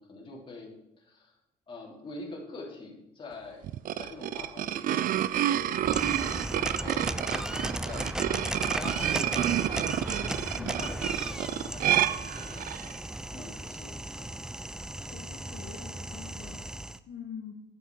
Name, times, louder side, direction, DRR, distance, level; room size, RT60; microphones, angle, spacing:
voice 1, 0.0-1.3 1.7-3.6 3.9-5.9 6.5-12.7 13.3-14.3, left 3 dB, 30° left, -2 dB, 3.2 m, -45 dB
sound 1, 3.6-13.0, right 12 dB, 55° right, 0.5 m, -29 dB
sound 2, 5.8-17.0, right 1 dB, 5° right, 0.5 m, -36 dB
voice 2, 15.0-16.6 17.1-17.5, left 7 dB, 60° left, -1 dB, 1.8 m, -44 dB
9.8 x 8.1 x 4.7 m, 0.87 s
cardioid pair, 110°, 17 cm